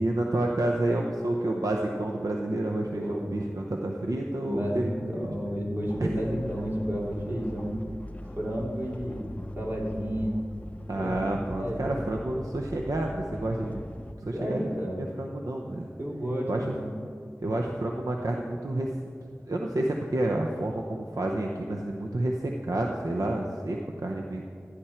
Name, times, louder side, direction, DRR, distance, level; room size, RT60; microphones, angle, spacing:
voice 1, 0.0-4.8 5.1-5.3 6.0-6.2 10.9-13.8 14.2-14.6 15.0-15.9 16.5-16.8 17.4-18.9 19.5-24.4, right 1 dB, 85° right, 0 dB, 0.8 m, -29 dB
voice 2, 2.9-3.4 4.4-7.8 8.2-9.3 9.5-10.4 10.9-11.9 14.3-15.0 16.0-17.0, equal, 40° right, -3 dB, 3.0 m, -32 dB
sound 1, 5.9-14.1, left 1 dB, 25° left, 0.7 m, -41 dB
16.0 x 10.0 x 4.4 m, 2.3 s
wide cardioid pair, 40°, 6 cm